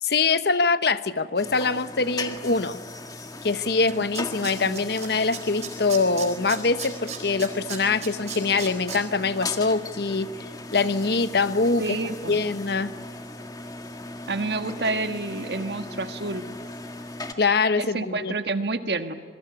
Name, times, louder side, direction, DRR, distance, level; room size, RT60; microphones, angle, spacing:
voice 1, 0.0-2.8 3.4-11.8 12.3-12.9 17.4-18.3, left 4 dB, 60° left, 12 dB, 1.0 m, -24 dB
sound 1, 1.4-17.3, left 2 dB, 20° left, 1.7 m, -38 dB
Tools, 3.5-3.6 3.9-5.1 5.3-9.0 9.4-9.5, right 9 dB, 40° right, 4.2 m, -35 dB
voice 2, 4.4-4.8 11.8-12.4 14.3-16.4 17.8-19.1, right 3 dB, 65° right, 8 dB, 1.6 m, -29 dB
26.5 x 21.5 x 9.9 m, 1.5 s
head